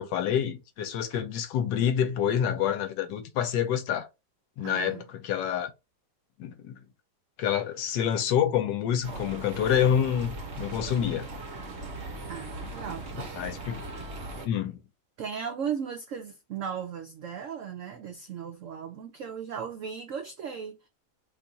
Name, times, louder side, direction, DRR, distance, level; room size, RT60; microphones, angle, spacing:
voice 1, 0.0-4.1 4.6-5.7 6.4-6.8 7.4-11.3 13.2-13.8 14.4-14.8, left 9 dB, 80° left, 1.2 m, -27 dB
voice 2, 4.6-5.1 12.3-13.5 15.2-20.9, right 7 dB, 85° right, 0.7 m, -37 dB
sound 1, 9.0-14.5, right 2 dB, 50° right, 0.9 m, -39 dB
3.0 x 2.4 x 3.9 m
omnidirectional pair, 1.9 m